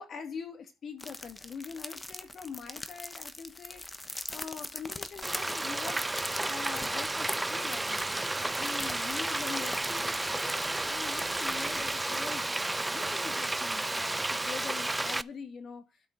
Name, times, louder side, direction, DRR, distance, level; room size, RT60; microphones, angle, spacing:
voice 1, 0.0-3.8 4.3-6.0 6.5-8.2 8.6-12.4 12.9-15.8, left 6 dB, 55° left, 7 dB, 2.0 m, -43 dB
sound 1, 1.0-12.0, left 2 dB, 15° left, 1.0 m, -42 dB
Frying (food), 5.2-15.2, right 2 dB, 15° right, 0.4 m, -32 dB
12.0 x 4.1 x 6.5 m, 0.28 s
cardioid pair, 90°, 0 cm